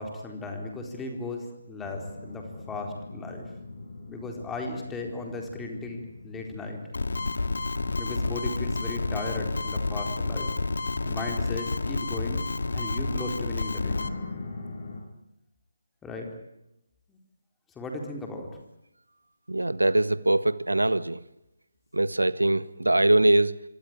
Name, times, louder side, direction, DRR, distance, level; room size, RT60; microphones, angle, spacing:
voice 1, 0.0-3.5 4.1-6.8 8.0-10.5 11.0-12.4 12.7-14.0 16.0-16.3 17.1-17.2 17.8-18.5, left 2 dB, 10° left, 2 dB, 4.2 m, -36 dB
sound 1, 1.8-15.0, left 3 dB, 45° left, 7.9 m, -43 dB
sound 2, 6.9-14.1, left 3 dB, 60° left, 2.4 m, -30 dB
voice 2, 19.5-21.2 21.9-23.6, right 2 dB, 80° right, 18 dB, 1.1 m, -22 dB
25.5 x 25.5 x 9.1 m, 0.91 s
figure-of-eight pair, 150°, 0 cm